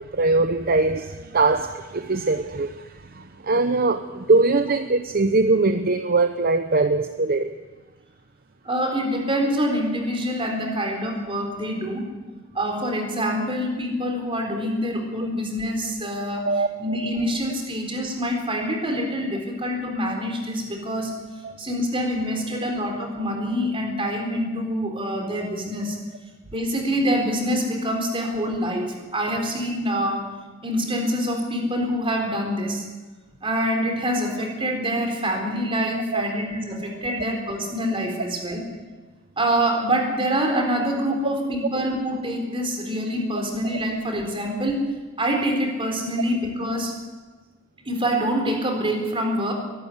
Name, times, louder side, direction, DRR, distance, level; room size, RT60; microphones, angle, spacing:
voice 1, 0.0-7.5 16.4-16.7 21.4-21.5 36.1-36.4, right 3 dB, 45° right, 8 dB, 0.8 m, -22 dB
voice 2, 8.6-12.1 12.5-16.5 16.8-21.1 21.6-26.0 26.5-30.2 30.6-32.8 33.4-38.6 39.4-44.9 45.2-46.9 47.9-49.5, equal, 25° right, 3 dB, 4.1 m, -25 dB
22.5 x 12.0 x 9.7 m, 1.2 s
head